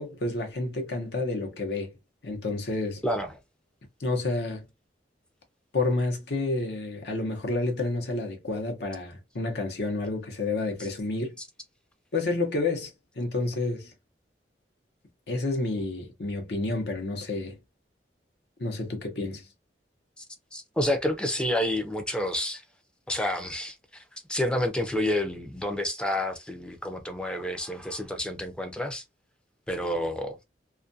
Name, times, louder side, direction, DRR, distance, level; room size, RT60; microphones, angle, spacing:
voice 1, 0.0-1.9 2.2-3.0 4.0-4.7 5.7-11.3 12.1-13.9 15.3-17.6 18.6-19.4, left 2 dB, 65° left, 0.8 m, -30 dB
voice 2, 3.0-3.4 20.2-20.3 20.5-22.6 23.1-24.0 24.3-29.0 29.7-30.4, left 1 dB, 5° left, 0.4 m, -29 dB
2.4 x 2.2 x 2.6 m
head